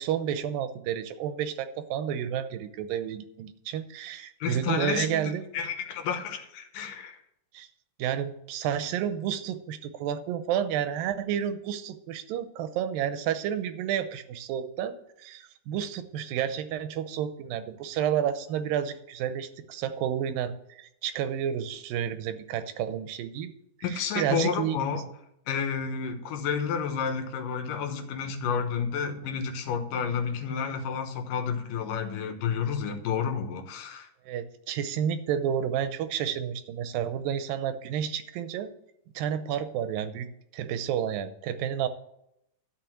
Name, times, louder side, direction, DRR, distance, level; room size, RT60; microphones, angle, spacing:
voice 1, 0.0-5.5 7.5-7.7 8.0-23.5 23.9-25.0 34.3-38.7 39.2-40.3 40.5-41.9, right 9 dB, 90° right, 11 dB, 2.5 m, -30 dB
voice 2, 4.4-7.2 23.8-25.0 25.5-34.1, left 6 dB, 75° left, 6 dB, 2.7 m, -30 dB
12.0 x 5.2 x 7.7 m, 0.80 s
omnidirectional pair, 3.9 m